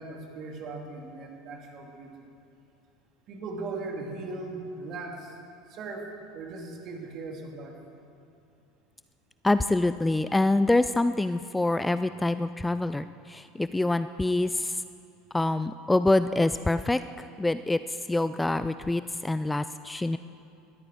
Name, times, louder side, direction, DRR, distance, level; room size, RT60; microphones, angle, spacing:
voice 1, 0.0-2.1 3.3-5.4 5.7-7.8, right 3 dB, 45° right, 1 dB, 2.8 m, -38 dB
voice 2, 9.4-14.8 15.3-20.2, left 2 dB, 10° left, 13 dB, 0.4 m, -26 dB
19.5 x 14.0 x 4.7 m, 2.6 s
figure-of-eight pair, 75°, 0 cm